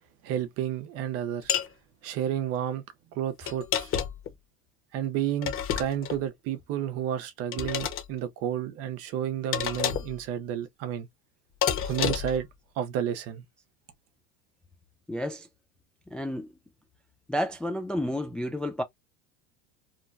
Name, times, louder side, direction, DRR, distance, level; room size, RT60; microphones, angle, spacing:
voice 1, 0.2-1.5 2.0-2.8 3.1-3.9 4.9-11.1 11.8-12.5 12.8-13.4, right 10 dB, 50° right, 0.8 m, -31 dB
sound 1, 1.5-1.7 3.5-4.3 5.4-6.2 7.5-8.1 9.5-10.2 11.6-12.4, left 9 dB, 45° left, 1.1 m, -29 dB
voice 2, 15.1-15.5 16.1-16.5 17.3-18.8, left 1 dB, 5° left, 0.3 m, -31 dB
2.9 x 2.2 x 2.6 m
supercardioid pair, 120°, 30 cm